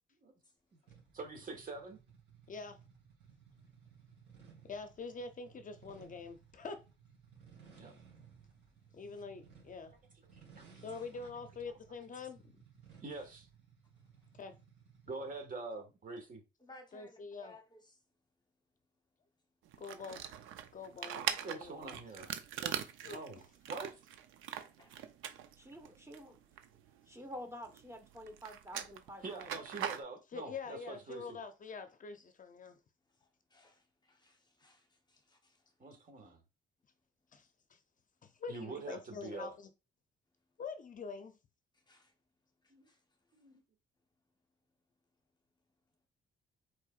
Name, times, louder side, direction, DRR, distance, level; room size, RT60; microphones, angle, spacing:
sound 1, 0.9-15.6, right 6 dB, 65° right, 2.9 m, -60 dB
voice 1, 1.1-2.0 7.8-7.9 10.6-10.7 13.0-13.5 15.1-16.4 21.3-22.3 22.6-22.8 23.1-23.4 23.7-24.0 29.2-31.4 35.8-36.4 38.5-39.5 42.7-42.9 43.3-43.6, right 3 dB, 45° right, 1.6 m, -45 dB
voice 2, 2.5-2.8 4.7-6.8 8.9-9.9 10.8-12.6 14.3-14.6 16.9-17.5 19.8-20.2 20.7-21.9 23.0-23.2 30.3-32.8 37.3-37.8 38.2-39.7 40.6-41.4, left 4 dB, 40° left, 0.6 m, -45 dB
voice 3, 10.6-11.1 16.6-18.0 24.8-24.9 25.2-25.3 33.5-35.6 41.9-42.1 42.9-43.0, left 2 dB, 20° left, 1.0 m, -60 dB
sound 2, 19.7-27.4 27.6-30.0, right 10 dB, 90° right, 0.6 m, -42 dB
voice 4, 25.6-26.4 27.1-29.5, equal, 15° right, 1.2 m, -48 dB
4.5 x 4.4 x 2.5 m
cardioid pair, 90°, 20 cm